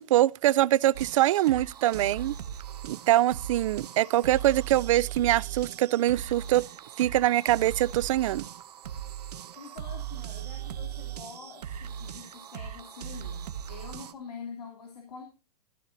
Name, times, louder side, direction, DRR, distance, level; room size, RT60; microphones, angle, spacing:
voice 1, 0.0-2.3 2.8-6.7 7.0-8.4, right 14 dB, 55° right, 0.4 m, -24 dB
sound 1, 0.9-14.1, right 10 dB, 85° right, 1.1 m, -39 dB
voice 2, 9.5-15.2, left 5 dB, 85° left, 2.7 m, -45 dB
14.0 x 11.5 x 2.6 m
hypercardioid pair, 155°, 20 cm